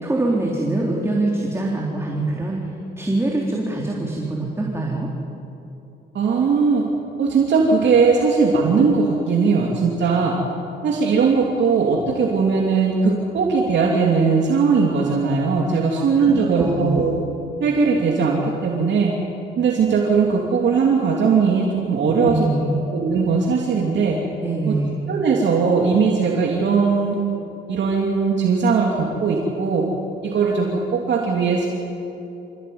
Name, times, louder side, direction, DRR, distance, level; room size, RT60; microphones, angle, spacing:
voice 1, 0.0-2.7 3.0-5.1 15.9-17.0 22.2-22.8 24.4-24.9, right 2 dB, 15° right, -2 dB, 3.7 m, -24 dB
voice 2, 6.1-6.9 7.2-10.4 10.8-17.1 17.6-19.1 19.6-22.5 22.9-24.2 24.6-24.8 25.1-27.2 27.7-29.8 30.2-31.7, right 5 dB, 65° right, -1 dB, 3.1 m, -19 dB
27.0 x 15.5 x 9.6 m, 2.9 s
cardioid pair, 90°, 20 cm